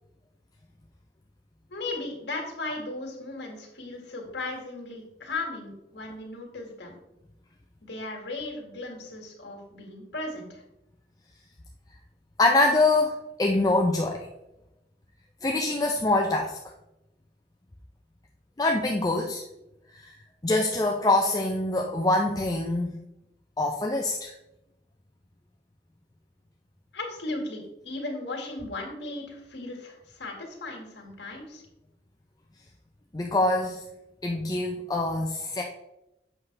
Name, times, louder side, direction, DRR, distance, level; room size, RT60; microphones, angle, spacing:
voice 1, 1.7-7.0 7.8-10.6 26.9-31.6, left 2 dB, 80° left, 0 dB, 2.0 m, -36 dB
voice 2, 12.4-14.3 15.4-16.6 18.6-19.4 19.9-20.1 20.4-23.0 23.6-24.3 33.1-33.8 34.2-35.6, left 2 dB, 20° left, 1 dB, 0.5 m, -24 dB
7.8 x 5.6 x 3.3 m, 0.91 s
head